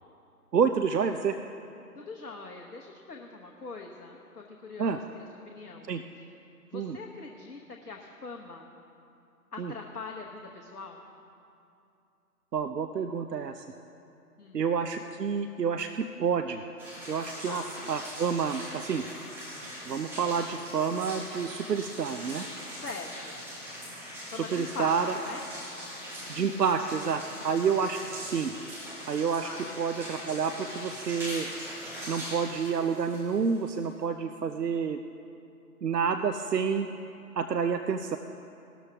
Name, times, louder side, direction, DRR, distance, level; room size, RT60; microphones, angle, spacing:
voice 1, 0.5-1.3 4.8-5.0 5.9-6.0 6.7-7.0 9.6-9.7 12.5-13.6 14.5-16.6 17.1-17.6 17.9-19.0 19.9-22.5 24.5-25.1 26.3-28.0 28.3-28.5 29.1-29.5 29.8-31.5 32.1-35.0 35.8-36.9 37.4-38.2, right 6 dB, 85° right, 8 dB, 0.7 m, -29 dB
voice 2, 1.9-5.9 6.2-6.3 6.6-8.7 9.5-11.0 14.4-14.7 17.4-17.9 22.8-23.4 24.3-25.4 29.4-29.8 36.3-36.9, left 4 dB, 75° left, 1 dB, 1.3 m, -42 dB
sound 1, 16.8-34.0, equal, 5° right, 1.8 m, -41 dB
17.5 x 13.0 x 3.6 m, 2.6 s
figure-of-eight pair, 140°, 47 cm